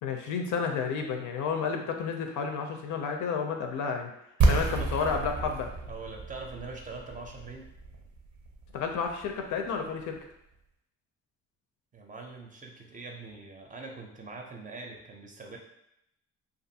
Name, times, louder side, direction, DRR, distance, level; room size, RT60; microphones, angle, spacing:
voice 1, 0.0-4.1 4.5-5.7 8.7-10.2, left 6 dB, 80° left, 4 dB, 0.5 m, -31 dB
sound 1, 4.4-10.1, right 3 dB, 70° right, 0.6 m, -30 dB
voice 2, 4.8-5.1 5.9-7.7 11.9-15.6, right 3 dB, 25° right, 1 dB, 0.5 m, -43 dB
2.5 x 2.4 x 2.7 m, 0.79 s
cardioid pair, 90°, 30 cm